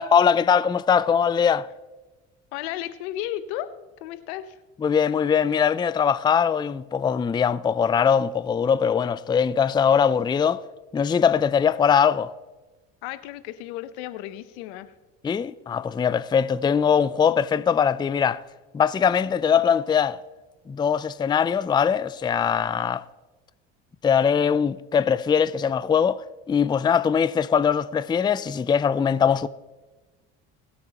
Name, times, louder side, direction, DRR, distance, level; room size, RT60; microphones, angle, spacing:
voice 1, 0.0-1.7 4.8-10.6 10.9-12.3 15.2-18.4 18.7-20.2 20.7-23.0 24.0-29.5, left 7 dB, 15° left, 0.4 m, -21 dB
voice 2, 2.5-3.7 4.0-4.6 13.0-14.9, left 13 dB, 85° left, 0.8 m, -34 dB
21.5 x 8.4 x 2.9 m
supercardioid pair, 80°, 33 cm